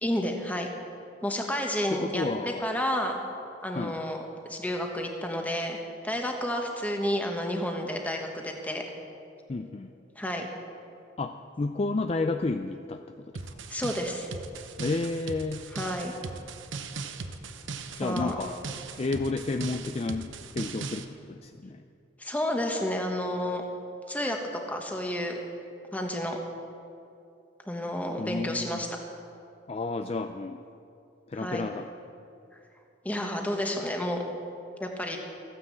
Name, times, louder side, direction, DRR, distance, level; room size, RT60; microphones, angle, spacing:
voice 1, 0.0-0.7 1.2-3.2 3.6-5.8 6.0-8.8 10.2-10.5 13.7-14.3 15.7-16.1 18.0-18.4 22.2-23.6 24.1-25.3 25.9-26.4 27.7-28.9 31.4-31.6 33.0-34.2 34.8-35.2, left 1 dB, 10° left, 2 dB, 1.3 m, -30 dB
voice 2, 1.9-2.6 3.7-4.0 9.5-9.9 11.2-13.5 14.8-15.6 18.0-18.6 19.0-21.8 28.2-28.8 29.7-30.6 31.3-31.9, left 3 dB, 30° left, 7 dB, 0.4 m, -31 dB
sound 1, 13.3-21.0, right 4 dB, 75° right, 0.9 m, -39 dB
15.0 x 9.7 x 7.6 m, 2.6 s
head